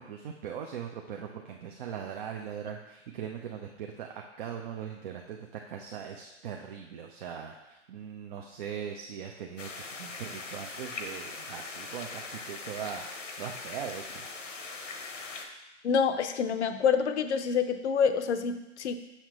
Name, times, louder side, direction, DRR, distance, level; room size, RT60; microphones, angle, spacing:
voice 1, 0.0-14.3, right 8 dB, 45° right, 2 dB, 0.6 m, -40 dB
sound 1, 9.6-15.5, left 3 dB, 85° left, 1.0 m, -41 dB
voice 2, 15.8-19.0, left 6 dB, 65° left, 10 dB, 0.7 m, -27 dB
6.6 x 5.8 x 3.0 m, 0.98 s
hypercardioid pair, 125°, 36 cm